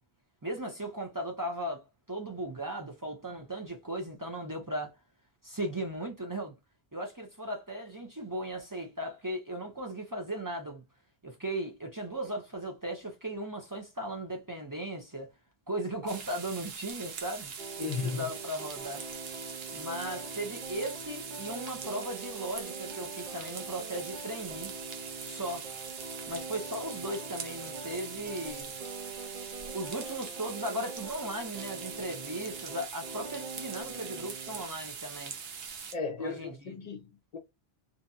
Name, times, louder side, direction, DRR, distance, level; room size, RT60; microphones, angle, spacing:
voice 1, 0.4-4.9 5.4-6.5 6.9-10.8 11.2-15.3 15.7-17.5 17.8-19.0 19.7-24.7 25.2-25.7 26.3-28.7 29.7-35.3 36.2-36.8, right 1 dB, 30° right, 0.4 m, -37 dB
sound 1, 16.1-35.9, right 6 dB, 75° right, 0.9 m, -42 dB
sound 2, 17.6-34.6, right 3 dB, 45° right, 0.8 m, -44 dB
voice 2, 17.8-18.3 35.9-37.4, left 5 dB, 45° left, 0.6 m, -35 dB
2.7 x 2.6 x 2.2 m
omnidirectional pair, 1.0 m